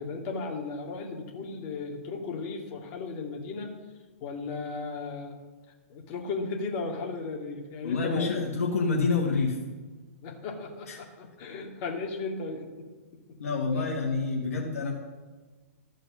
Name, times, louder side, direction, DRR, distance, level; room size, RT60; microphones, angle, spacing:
voice 1, 0.0-3.8 4.2-5.3 5.9-8.4 10.2-12.9 13.3-13.4, left 4 dB, 40° left, 1 dB, 2.2 m, -35 dB
voice 2, 7.8-9.6 10.9-11.0 13.4-14.9, left 4 dB, 75° left, -1 dB, 1.7 m, -27 dB
14.0 x 5.1 x 6.3 m, 1.3 s
hypercardioid pair, 125°, 8 cm